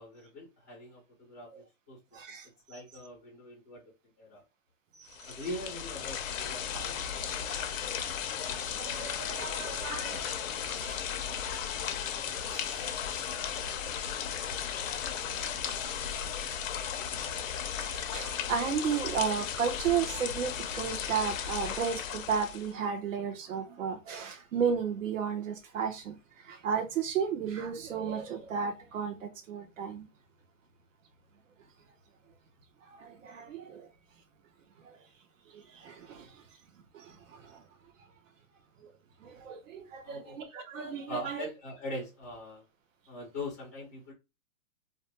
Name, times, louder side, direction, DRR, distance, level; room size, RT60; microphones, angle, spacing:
voice 1, 0.0-2.2 2.7-3.9 4.2-4.4 5.2-7.2 40.0-40.4 41.1-42.6 43.1-44.1, left 1 dB, 15° left, 0.4 m, -42 dB
sound 1, 5.1-22.7, left 8 dB, 65° left, 0.6 m, -35 dB
voice 2, 8.8-10.2 10.8-11.0 12.5-12.8 17.8-26.1 26.5-30.1 33.0-33.8 35.8-36.3 39.2-41.4, right 7 dB, 65° right, 0.8 m, -33 dB
2.3 x 2.2 x 2.9 m
hypercardioid pair, 175°, 42 cm